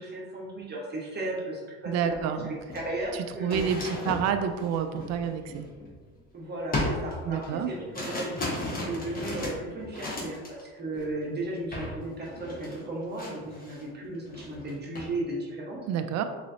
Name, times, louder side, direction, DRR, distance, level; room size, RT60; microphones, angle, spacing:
voice 1, 0.0-4.2 6.3-15.8, right 2 dB, 25° right, -3 dB, 1.2 m, -35 dB
voice 2, 1.9-2.6 3.1-5.7 7.3-7.7 15.9-16.2, right 8 dB, 45° right, 8 dB, 0.4 m, -29 dB
sound 1, 2.1-2.2 2.6-6.2 6.7-10.6 10.9-11.2 11.7-12.0 12.2-13.9 14.2-15.1, left 1 dB, 25° left, 1.1 m, -35 dB
3.8 x 3.0 x 2.7 m, 1.4 s
supercardioid pair, 85°, 37 cm